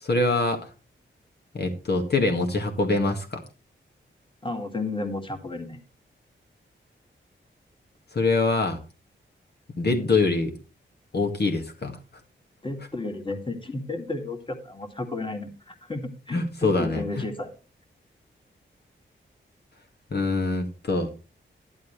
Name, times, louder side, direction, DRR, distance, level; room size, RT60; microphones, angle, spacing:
voice 1, 0.0-0.7 1.5-3.4 8.1-8.8 9.8-10.5 11.1-12.0 16.3-17.0 20.1-21.1, left 3 dB, 55° left, 4 dB, 2.0 m, -24 dB
voice 2, 4.4-5.8 12.6-17.5, left 2 dB, 25° left, 6 dB, 2.4 m, -33 dB
11.5 x 11.0 x 3.3 m, 0.34 s
wide cardioid pair, 80°, 20 cm